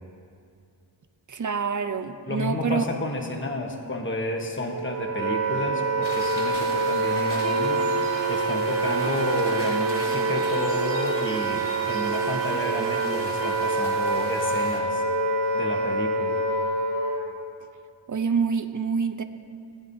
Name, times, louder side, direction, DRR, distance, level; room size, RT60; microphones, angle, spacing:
voice 1, 1.3-2.9 18.1-19.2, right 5 dB, 45° right, 9 dB, 0.6 m, -26 dB
voice 2, 2.3-7.8 8.3-15.0 15.5-16.4, left 2 dB, 25° left, 2 dB, 1.1 m, -31 dB
Wind instrument woodwind instrument, 4.7-17.3, right 3 dB, 85° right, 1.7 m, -26 dB
sound 1, 6.0-14.8, left 1 dB, 45° left, 2.9 m, -39 dB
sound 2, 7.4-13.7, right 3 dB, 70° right, 1.5 m, -36 dB
19.0 x 9.4 x 2.7 m, 2.4 s
wide cardioid pair, 65°, 43 cm